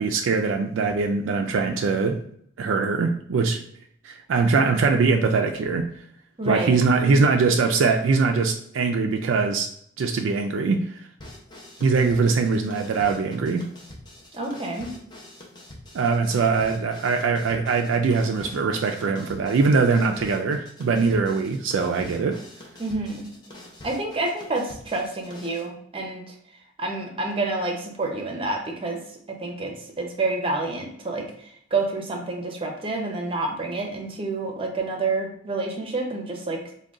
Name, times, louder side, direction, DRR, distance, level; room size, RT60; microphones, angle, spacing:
voice 1, 0.0-2.2 2.6-3.6 4.0-5.9 6.5-9.7 10.0-11.1 11.8-13.7 15.9-22.4, right 4 dB, 80° right, 3 dB, 0.3 m, -22 dB
voice 2, 6.4-6.8 14.3-14.9 22.8-23.3 23.8-26.2 26.8-29.0 29.4-36.6, right 3 dB, 30° right, 2 dB, 0.7 m, -28 dB
sound 1, 11.2-25.7, left 1 dB, 20° left, 0.8 m, -45 dB
3.7 x 2.2 x 3.6 m, 0.66 s
head